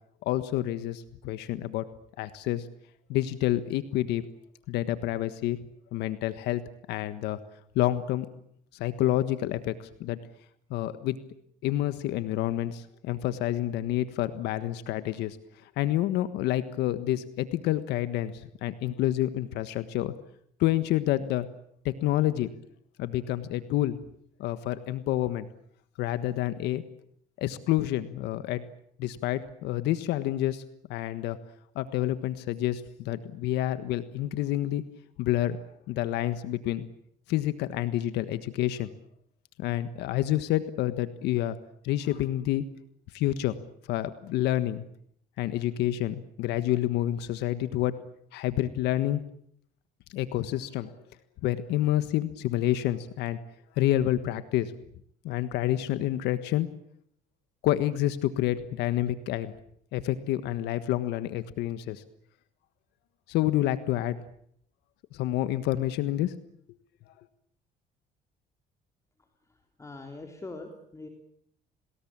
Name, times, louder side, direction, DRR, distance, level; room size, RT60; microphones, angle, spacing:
voice 1, 0.2-1.8 2.2-2.7 3.1-4.3 4.7-5.6 5.9-6.6 6.9-7.4 7.7-8.3 8.7-10.2 10.7-11.2 11.6-15.4 15.8-20.1 20.6-21.5 21.8-22.5 23.0-24.0 24.4-25.5 26.0-26.8 27.4-28.6 29.0-30.6 30.9-31.4 31.7-34.8 35.2-35.6 35.9-36.9 37.3-38.9 39.6-41.6 41.8-42.6 43.1-43.6 43.9-44.8 45.4-47.9 48.3-49.2 50.1-50.9 51.4-53.4 53.8-54.7 55.2-56.7 57.6-59.5 59.9-62.0 63.3-64.2 65.1-66.3, left 14 dB, 90° left, 12 dB, 1.5 m, -28 dB
voice 2, 69.8-71.1, left 2 dB, 15° left, 3 dB, 3.7 m, -42 dB
29.0 x 20.0 x 8.8 m, 0.69 s
cardioid pair, 110°, 17 cm